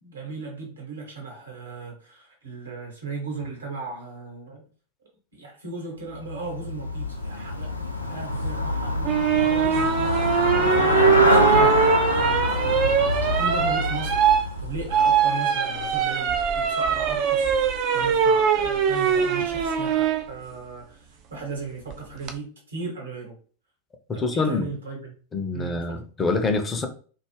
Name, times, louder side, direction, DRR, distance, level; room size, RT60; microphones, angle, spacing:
voice 1, 0.0-4.6 5.3-7.7 8.1-23.4 24.1-25.2 25.5-26.0, right 3 dB, 70° right, 1.0 m, -37 dB
Traffic noise roadway noise / Bicycle, 6.1-15.3, left 2 dB, 85° left, 0.3 m, -25 dB
sound 1, 9.0-20.2 21.9-22.3, right 7 dB, 40° right, 0.3 m, -22 dB
voice 2, 24.2-24.6 25.3-26.9, left 3 dB, 20° left, 0.4 m, -25 dB
2.3 x 2.0 x 3.2 m
figure-of-eight pair, 90°, 0 cm